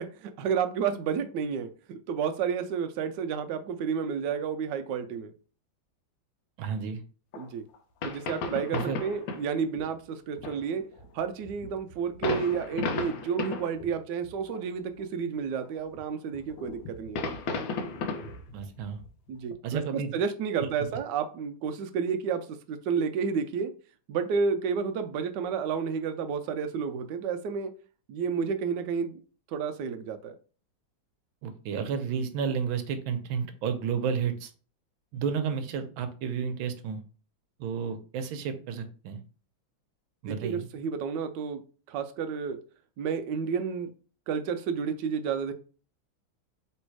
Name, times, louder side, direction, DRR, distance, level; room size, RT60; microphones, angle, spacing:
voice 1, 0.0-5.3 7.4-7.6 8.0-10.8 11.1-17.2 19.3-23.7 24.1-27.7 28.1-29.2 29.5-30.3 40.3-41.6 41.9-42.6 43.0-43.9 44.3-45.5, right 6 dB, 70° right, 8 dB, 1.1 m, -31 dB
voice 2, 6.6-7.0 8.7-9.0 18.5-19.0 19.6-20.1 31.4-34.5 35.1-37.0 37.6-39.2 40.2-40.7, right 6 dB, 90° right, 8 dB, 1.5 m, -31 dB
sound 1, 7.3-7.5 7.7-7.8 8.0-9.5 9.8-9.9 10.4-14.0 14.2-14.6 15.4-16.0 16.3-19.5, left 3 dB, 75° left, 1.4 m, -35 dB
3.4 x 3.1 x 4.6 m, 0.37 s
omnidirectional pair, 2.2 m